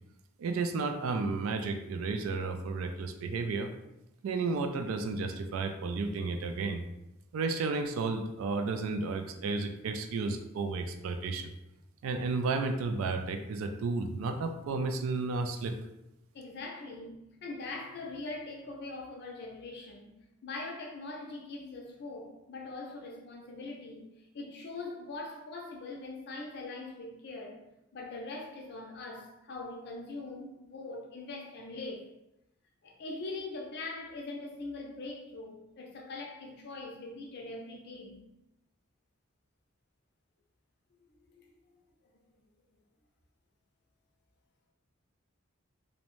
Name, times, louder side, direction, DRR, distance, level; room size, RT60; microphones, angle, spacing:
voice 1, 0.4-3.7 4.2-6.8 7.3-11.5 12.0-15.8, right 3 dB, 80° right, 0.3 m, -32 dB
voice 2, 16.3-20.1 20.4-24.1 24.3-27.6 27.9-32.1 32.8-38.2 41.3-41.5, left 3 dB, 55° left, 0.5 m, -42 dB
2.6 x 2.0 x 3.0 m
head